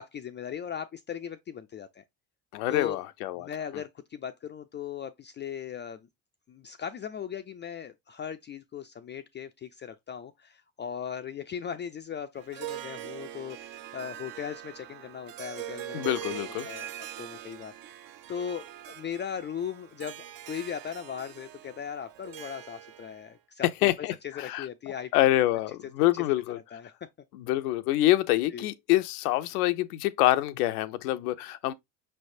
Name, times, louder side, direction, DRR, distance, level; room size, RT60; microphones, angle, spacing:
voice 1, 0.0-2.0 2.7-3.0 3.4-6.1 6.5-16.4 16.6-16.9 17.2-18.0 18.3-25.1 26.1-26.9 28.5-28.7, left 8 dB, 30° left, 0.3 m, -38 dB
voice 2, 2.5-3.5 15.9-16.7 23.8-24.7 25.1-26.6 27.3-31.7, left 16 dB, 85° left, 0.6 m, -26 dB
Harp, 12.4-23.3, right 12 dB, 50° right, 0.6 m, -42 dB
5.5 x 3.3 x 2.6 m
supercardioid pair, 75°, 44 cm